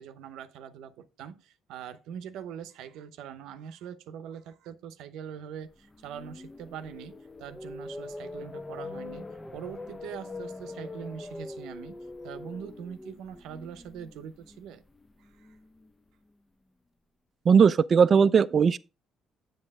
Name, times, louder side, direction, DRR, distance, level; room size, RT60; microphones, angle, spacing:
voice 1, 0.0-14.8 15.2-15.6, right 8 dB, 85° right, 0.8 m, -43 dB
sound 1, 5.8-15.9, left 2 dB, 15° left, 0.6 m, -43 dB
voice 2, 17.5-18.8, right 6 dB, 45° right, 0.4 m, -19 dB
7.9 x 7.2 x 3.6 m
cardioid pair, 105°, 0 cm